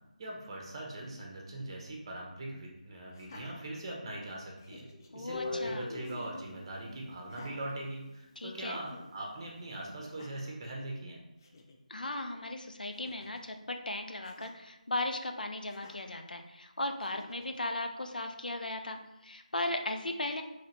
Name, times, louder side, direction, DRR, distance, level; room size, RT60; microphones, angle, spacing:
voice 1, 0.2-4.9 5.1-11.2, right 1 dB, 35° right, -1 dB, 0.8 m, -41 dB
Laughter, 3.1-4.2 4.6-5.2 6.0-6.5 7.2-8.5 8.9-9.1 10.0-10.6 11.1-11.2 11.4-11.8 12.9-13.5 14.2-14.6 15.7-16.2 17.0-17.6, left 2 dB, 25° left, 0.3 m, -54 dB
voice 2, 5.1-5.9 8.4-8.8 11.9-20.4, left 2 dB, 85° left, 6 dB, 0.5 m, -37 dB
Guitar, 5.3-8.3, left 2 dB, 50° left, 0.9 m, -41 dB
3.9 x 3.1 x 2.8 m, 0.94 s
figure-of-eight pair, 165°, 4 cm